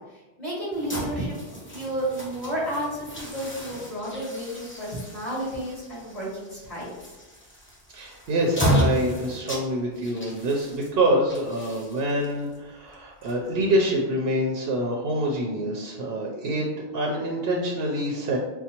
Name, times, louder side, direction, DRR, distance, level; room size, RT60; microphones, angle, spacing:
voice 1, 0.4-1.4 1.7-6.9, right 1 dB, 35° left, -7 dB, 1.6 m, -31 dB
sound 1, 0.7-13.8, equal, 15° left, 0.6 m, -33 dB
voice 2, 7.9-18.4, right 1 dB, 75° right, -1 dB, 0.8 m, -26 dB
5.2 x 2.0 x 2.9 m, 1.2 s
omnidirectional pair, 1.0 m